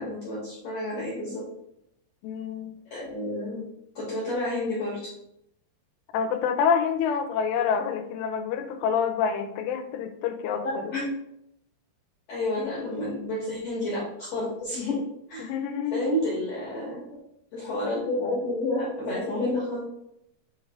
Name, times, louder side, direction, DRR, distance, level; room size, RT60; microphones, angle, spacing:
voice 1, 0.0-1.4 2.9-3.6 4.0-5.0 10.6-11.1 12.3-15.0 15.3-15.5 15.9-17.0 17.5-19.8, left 1 dB, 60° left, -6 dB, 1.7 m, -30 dB
voice 2, 2.2-2.8 6.1-10.9 15.4-16.0, left 7 dB, 90° left, 7 dB, 2.7 m, -27 dB
8.1 x 3.3 x 3.5 m, 0.79 s
omnidirectional pair, 4.8 m